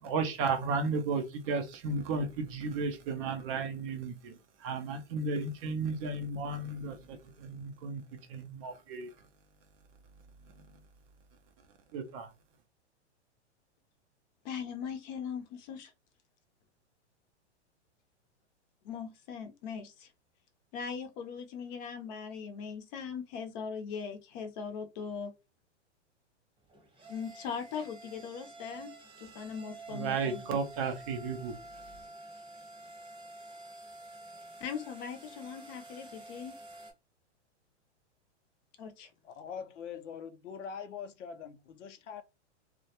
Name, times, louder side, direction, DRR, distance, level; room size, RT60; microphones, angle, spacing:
voice 1, 0.0-9.1 11.9-12.3 29.9-31.6, right 4 dB, 30° right, 0.4 m, -34 dB
voice 2, 14.4-15.9 18.8-20.1 20.7-25.3 27.1-30.6 34.6-36.5 38.8-39.1, left 6 dB, 40° left, 0.6 m, -40 dB
sound 1, 26.6-36.9, right 2 dB, 15° right, 0.9 m, -49 dB
voice 3, 39.2-42.2, left 7 dB, 85° left, 0.5 m, -43 dB
2.2 x 2.1 x 2.8 m
hypercardioid pair, 130°, 35 cm